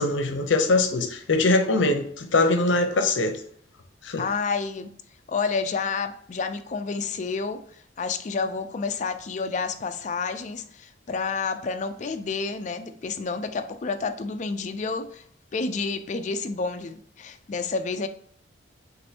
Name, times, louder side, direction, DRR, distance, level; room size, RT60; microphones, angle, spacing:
voice 1, 0.0-3.4 4.0-4.2, left 2 dB, 80° left, 0.7 m, -22 dB
voice 2, 4.2-4.9 5.3-7.6 8.0-15.2 15.5-18.1, left 4 dB, 40° left, 0.4 m, -29 dB
6.4 x 2.6 x 2.8 m
head